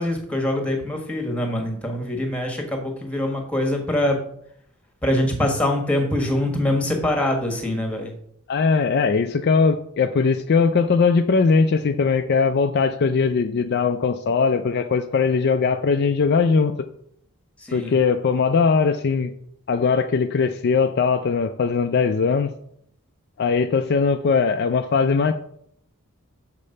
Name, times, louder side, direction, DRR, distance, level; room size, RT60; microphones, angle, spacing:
voice 1, 0.0-4.2 5.0-8.1 17.6-17.9, left 1 dB, 5° left, 3 dB, 1.3 m, -24 dB
voice 2, 8.5-16.7 17.7-19.3 19.7-22.5 23.4-25.3, left 5 dB, 45° left, 7 dB, 0.4 m, -20 dB
6.6 x 5.1 x 5.4 m, 0.69 s
head